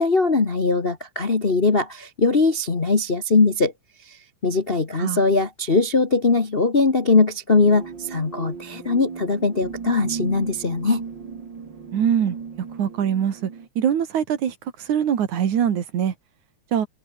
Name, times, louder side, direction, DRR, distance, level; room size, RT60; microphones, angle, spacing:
voice 1, 0.0-3.7 4.1-4.2 4.4-11.0, left 3 dB, 35° left, 0.9 m, -20 dB
sound 1, 7.6-13.7, right 6 dB, 40° right, 2.7 m, -36 dB
voice 2, 11.9-12.4 12.8-13.5 13.8-14.5 14.8-16.1 16.7-16.9, right 9 dB, 90° right, 3.6 m, -22 dB
omnidirectional pair, 3.3 m